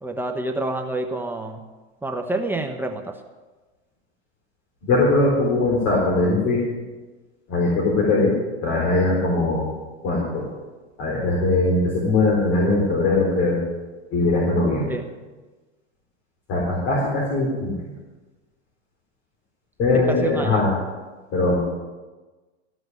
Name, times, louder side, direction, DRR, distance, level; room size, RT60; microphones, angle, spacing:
voice 1, 0.0-1.6 2.0-3.1 14.9-15.1 19.9-20.7, right 2 dB, 5° right, 3 dB, 1.0 m, -28 dB
voice 2, 4.9-6.6 7.5-8.3 8.6-9.7 10.0-10.5 11.0-13.6 14.1-15.0 16.5-17.7 19.8-20.7 21.3-21.6, left 2 dB, 45° left, -3 dB, 4.0 m, -20 dB
14.5 x 6.1 x 9.3 m, 1.2 s
hypercardioid pair, 115°, 32 cm